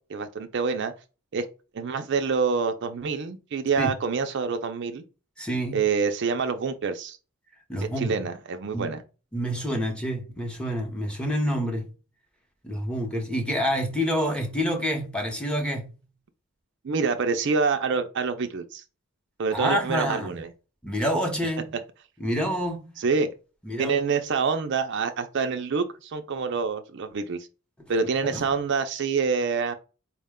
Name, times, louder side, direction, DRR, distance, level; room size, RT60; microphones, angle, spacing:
voice 1, 0.1-0.9 1.3-1.5 1.7-5.0 5.7-7.2 8.0-9.0 16.8-18.8 19.4-20.5 23.0-23.3 23.8-27.4 27.9-29.7, right 5 dB, 55° right, 0.4 m, -26 dB
voice 2, 5.4-5.8 7.7-8.2 8.7-8.9 9.3-11.9 12.6-15.9 19.5-20.4 20.8-21.7 22.2-23.0 23.6-24.0 28.2-28.4, equal, 5° left, 0.8 m, -28 dB
4.5 x 2.1 x 3.5 m
head